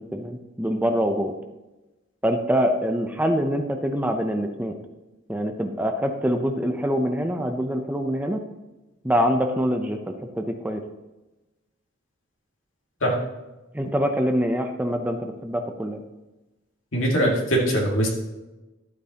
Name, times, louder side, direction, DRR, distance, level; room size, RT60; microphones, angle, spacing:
voice 1, 0.1-1.3 2.2-4.7 5.3-8.4 9.0-10.0 10.4-10.8 13.7-16.0, equal, 10° right, 5 dB, 0.5 m, -24 dB
voice 2, 16.9-18.1, equal, 75° left, -1 dB, 2.1 m, -21 dB
11.5 x 8.2 x 2.9 m, 1.1 s
head